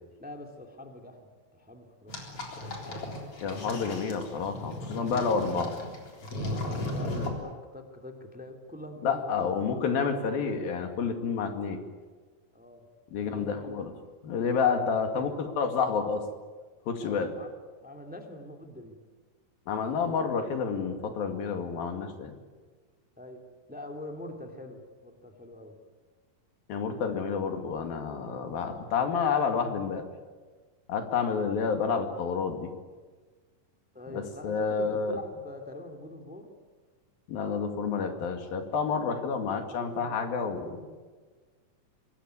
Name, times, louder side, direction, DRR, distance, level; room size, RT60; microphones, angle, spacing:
voice 1, 0.2-2.4 6.4-9.9 12.5-12.9 13.1-13.8 15.1-15.3 17.0-17.5 17.8-19.0 23.2-25.8 33.9-36.5 39.8-40.3 40.8-41.0, left 1 dB, 5° right, 4 dB, 2.3 m, -44 dB
sound 1, 2.1-7.3, left 1 dB, 40° left, 4.6 m, -36 dB
voice 2, 3.4-5.7 9.0-11.8 13.1-13.9 14.2-16.2 16.9-17.3 19.7-22.4 26.7-30.1 30.9-32.7 34.1-35.2 37.3-41.0, left 5 dB, 80° left, 6 dB, 4.1 m, -29 dB
25.0 x 21.0 x 9.7 m, 1.4 s
omnidirectional pair, 4.1 m